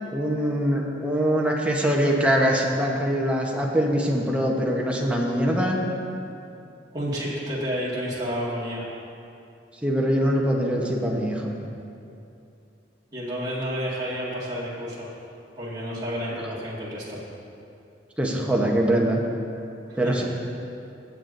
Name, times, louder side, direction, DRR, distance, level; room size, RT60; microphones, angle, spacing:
voice 1, 0.1-5.8 9.8-11.5 18.2-19.2 20.0-20.2, equal, 5° right, -2 dB, 0.9 m, -23 dB
voice 2, 6.9-8.9 13.1-15.1 15.6-17.2 19.9-20.2, equal, 25° right, -7 dB, 1.9 m, -30 dB
16.0 x 7.4 x 2.6 m, 2.7 s
head